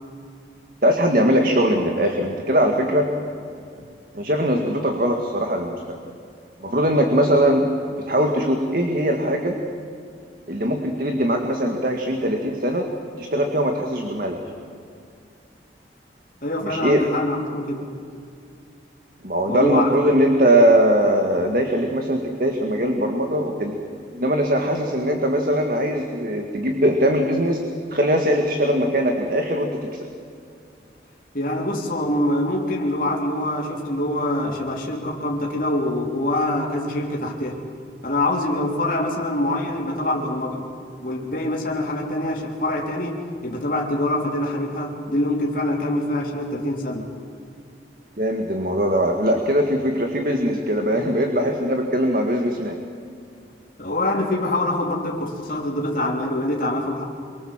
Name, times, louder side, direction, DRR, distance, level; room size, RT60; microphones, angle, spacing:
voice 1, 0.8-3.1 4.1-6.0 6.6-7.7 8.0-9.6 10.5-12.9 13.2-14.4 16.6-17.0 19.2-23.8 24.1-27.6 27.9-30.1 48.2-52.8, equal, 50° right, 3 dB, 2.0 m, -21 dB
voice 2, 16.4-17.9 19.5-19.9 31.3-37.6 38.0-40.6 41.0-47.1 53.8-57.0, left 1 dB, 50° left, -2 dB, 3.7 m, -24 dB
27.5 x 24.0 x 7.6 m, 2.4 s
head